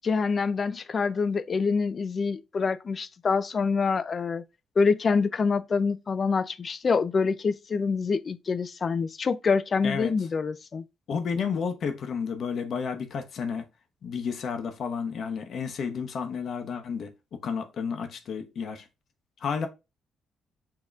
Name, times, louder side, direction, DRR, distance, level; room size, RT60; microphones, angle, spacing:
voice 1, 0.0-4.4 4.8-10.8, left 5 dB, 40° left, 0.4 m, -26 dB
voice 2, 11.1-13.7 14.0-18.9 19.4-19.7, left 6 dB, 60° left, 0.8 m, -31 dB
7.1 x 2.9 x 2.4 m
cardioid pair, 90°, 0 cm